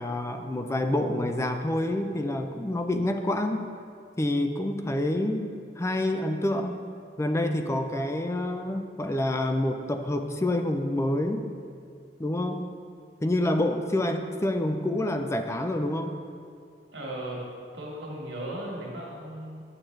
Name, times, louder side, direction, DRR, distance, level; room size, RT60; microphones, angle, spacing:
voice 1, 0.0-3.7 4.2-5.5 5.8-6.8 7.2-11.5 12.2-12.7 13.2-16.2, left 1 dB, 15° left, 6 dB, 0.4 m, -27 dB
voice 2, 16.9-17.4 17.7-19.6, right 1 dB, 80° right, -3 dB, 1.8 m, -36 dB
9.0 x 6.6 x 3.2 m, 2.3 s
head